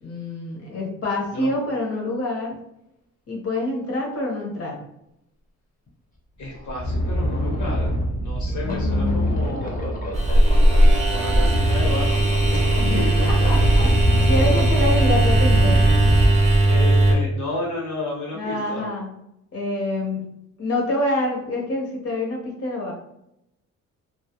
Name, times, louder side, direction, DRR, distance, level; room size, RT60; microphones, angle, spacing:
voice 1, 0.0-2.6 3.3-4.8 8.6-9.4 12.8-13.9 14.3-15.8 18.3-19.1 19.5-20.2 20.6-22.9, left 1 dB, 50° left, -1 dB, 0.9 m, -26 dB
sound 1, 5.9-6.0 6.4-16.3, equal, 25° left, 0.7 m, -26 dB
voice 2, 6.4-7.9 8.2-10.1 11.1-12.6 12.9-13.6 13.8-14.1 16.6-18.9, left 2 dB, 70° left, -3 dB, 1.1 m, -32 dB
sound 2, 10.1-17.2, right 1 dB, 25° right, 0.6 m, -17 dB
2.3 x 2.1 x 2.8 m, 0.80 s
cardioid pair, 90°, 30 cm